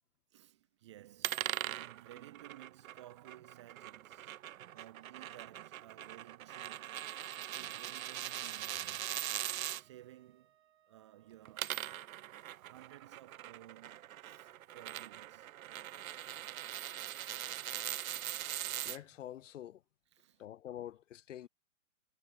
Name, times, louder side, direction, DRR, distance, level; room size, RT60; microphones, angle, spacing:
voice 1, 0.3-4.4 4.7-10.5 10.8-11.9 12.5-15.5 20.1-20.4, right 14 dB, 20° right, 0.5 m, -57 dB
sound 1, 1.2-9.8 11.3-19.0, right 12 dB, 80° right, 0.6 m, -41 dB
Wind instrument woodwind instrument, 8.1-12.8, right 12 dB, 50° right, 1.5 m, -71 dB
voice 2, 18.8-19.8 20.4-21.5, left 11 dB, 65° left, 0.7 m, -46 dB
hypercardioid pair, 150°, 41 cm